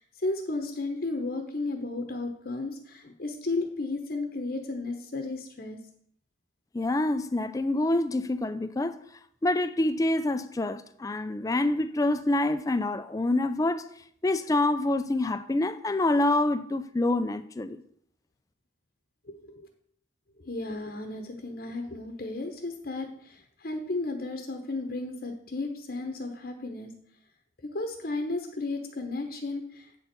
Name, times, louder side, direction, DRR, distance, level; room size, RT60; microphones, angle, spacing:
voice 1, 0.0-5.8 19.2-19.7 20.4-26.9 27.7-30.0, left 2 dB, 50° left, 0.8 m, -34 dB
voice 2, 6.7-9.0 9.4-13.9 14.2-17.8, left 2 dB, 20° left, 0.4 m, -26 dB
8.2 x 4.3 x 6.6 m
head